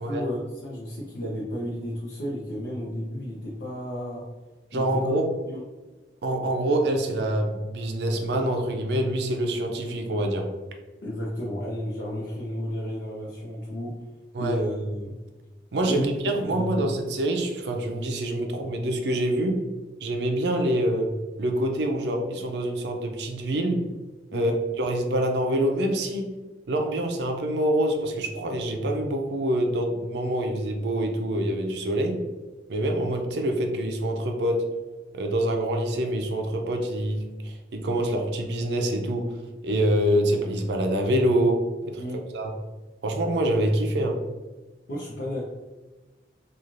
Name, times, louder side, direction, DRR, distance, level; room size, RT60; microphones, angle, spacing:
voice 1, 0.0-4.2 4.7-4.9 5.5-5.7 11.0-14.0 14.4-15.1 15.8-16.1 16.4-16.9 24.3-24.5 42.0-42.2 44.9-45.4, equal, 85° left, -5 dB, 0.6 m, -32 dB
voice 2, 4.7-5.3 6.2-10.5 14.3-14.6 15.7-19.6 20.0-21.1 21.4-23.8 24.3-26.3 26.7-32.2 32.7-34.6 35.1-39.3 39.6-42.0 42.3-42.5 43.0-44.2, right 1 dB, 80° right, 3 dB, 0.4 m, -25 dB
3.1 x 2.3 x 2.5 m, 1.2 s
head